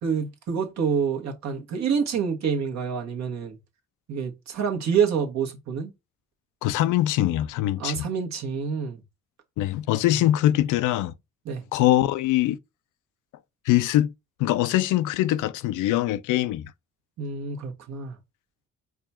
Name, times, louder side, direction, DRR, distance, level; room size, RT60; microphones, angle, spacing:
voice 1, 0.0-3.6 4.1-5.9 7.8-9.0 11.4-11.6 17.2-18.2, right 6 dB, 60° right, 1.3 m, -27 dB
voice 2, 6.6-8.1 9.6-11.1 11.7-12.6 13.7-14.1 14.4-16.7, left 14 dB, 85° left, 0.5 m, -23 dB
4.8 x 2.4 x 4.2 m
cardioid pair, 90°, 30 cm